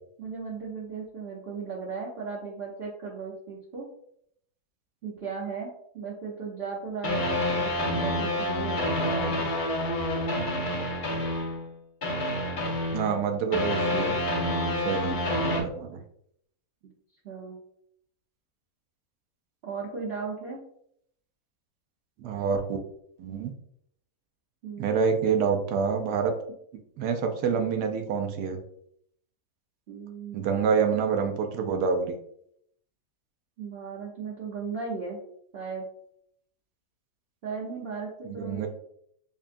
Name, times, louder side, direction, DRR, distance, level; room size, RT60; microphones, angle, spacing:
voice 1, 0.2-3.8 5.0-9.4 17.2-17.6 19.6-20.6 24.6-25.0 29.9-30.8 33.6-35.2 35.5-35.8 37.4-38.7, right 5 dB, 55° right, -3 dB, 0.8 m, -36 dB
sound 1, 7.0-11.7 12.0-15.6, left 1 dB, 45° left, 0.7 m, -28 dB
voice 2, 12.9-14.2 14.8-15.2 15.4-16.0 22.2-22.8 23.2-23.5 24.8-26.3 27.0-28.6 30.3-32.1 38.4-38.7, right 6 dB, 90° right, 5 dB, 1.2 m, -27 dB
5.3 x 2.3 x 2.5 m, 0.69 s
omnidirectional pair, 1.7 m